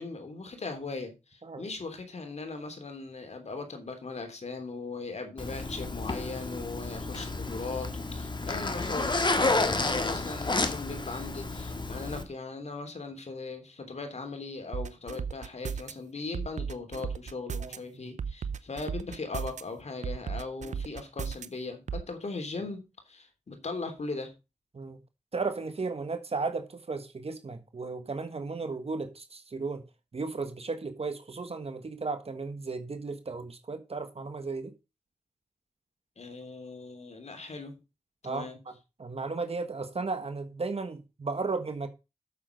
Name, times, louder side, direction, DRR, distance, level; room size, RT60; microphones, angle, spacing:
voice 1, 0.0-24.3 36.2-37.8 38.2-38.6, left 3 dB, 65° left, 3.3 m, -39 dB
Zipper (clothing), 5.4-12.2, left 3 dB, 40° left, 1.6 m, -31 dB
sound 1, 14.7-15.9 16.3-17.8 18.2-19.6 20.0-21.5 21.9-22.0, right 6 dB, 80° right, 0.7 m, -34 dB
voice 2, 25.3-29.8 30.1-34.7 38.2-38.7 39.0-41.9, right 4 dB, 55° right, 1.4 m, -35 dB
8.5 x 7.5 x 5.2 m
cardioid pair, 55°, 12 cm